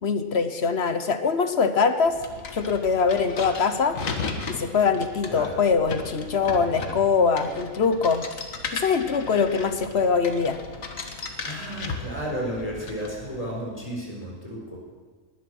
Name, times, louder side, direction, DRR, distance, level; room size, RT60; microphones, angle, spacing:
voice 1, 0.0-2.2 2.5-4.0 4.5-8.2 8.7-10.6, left 5 dB, 55° left, 9 dB, 1.1 m, -23 dB
sound 1, 2.1-13.6, left 4 dB, 70° left, 1.7 m, -36 dB
voice 2, 11.4-14.8, equal, 25° left, -2 dB, 4.2 m, -33 dB
19.5 x 11.0 x 6.3 m, 1.5 s
omnidirectional pair, 1.5 m